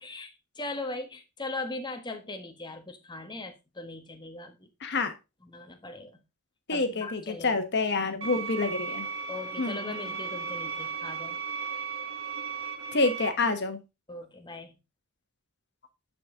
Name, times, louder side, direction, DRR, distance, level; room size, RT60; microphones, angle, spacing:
voice 1, 0.0-4.7 5.4-6.2 6.7-7.7 9.3-11.4 14.1-14.7, left 2 dB, 20° left, 1.3 m, -39 dB
voice 2, 4.8-5.1 6.7-9.1 9.6-9.9 12.9-13.8, left 3 dB, 50° left, 1.5 m, -27 dB
sound 1, 8.2-13.3, right 6 dB, 60° right, 2.1 m, -36 dB
11.5 x 5.3 x 3.8 m
head